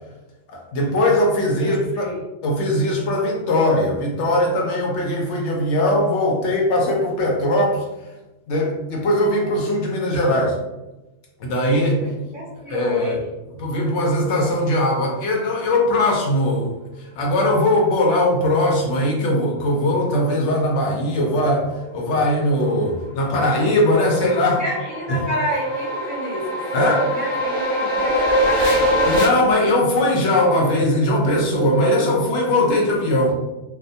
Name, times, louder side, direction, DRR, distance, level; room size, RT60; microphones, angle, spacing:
voice 1, 0.5-2.1 2.4-7.8 8.5-10.6 11.4-12.0 12.7-13.2 13.5-16.7 17.1-24.6 25.1-25.2 26.7-27.1 29.1-33.3, left 1 dB, 75° left, -1 dB, 0.9 m, -20 dB
voice 2, 1.6-2.2 12.0-13.2 24.6-26.6 27.1-29.4, equal, 20° right, -9 dB, 0.7 m, -29 dB
sound 1, 22.7-29.3, equal, 25° left, 1.0 m, -23 dB
2.3 x 2.1 x 2.6 m, 1.0 s
omnidirectional pair, 1.2 m